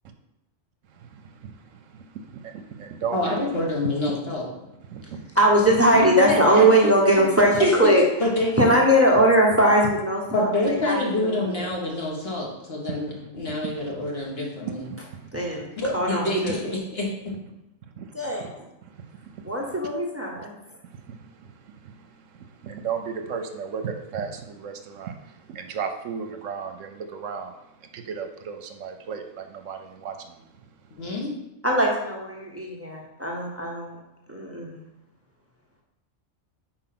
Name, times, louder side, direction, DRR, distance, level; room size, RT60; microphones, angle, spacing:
voice 1, 0.9-3.4 4.9-5.4 12.9-13.0 13.6-13.9 14.8-15.6 18.0-18.5 18.8-19.8 20.4-20.5 20.8-30.9, right 6 dB, 75° right, 6 dB, 1.0 m, -36 dB
voice 2, 3.1-4.7 6.0-7.2 7.6-8.5 10.3-14.8 15.8-17.1 31.0-31.3, left 1 dB, 50° left, -3 dB, 1.7 m, -27 dB
voice 3, 5.4-8.0 8.6-11.0 11.4-11.7 15.3-15.7 15.9-16.5 18.1-18.4 19.4-20.5 31.6-34.0 34.3-34.8, right 1 dB, 10° right, -2 dB, 0.9 m, -20 dB
4.9 x 4.5 x 5.9 m, 0.90 s
omnidirectional pair, 1.3 m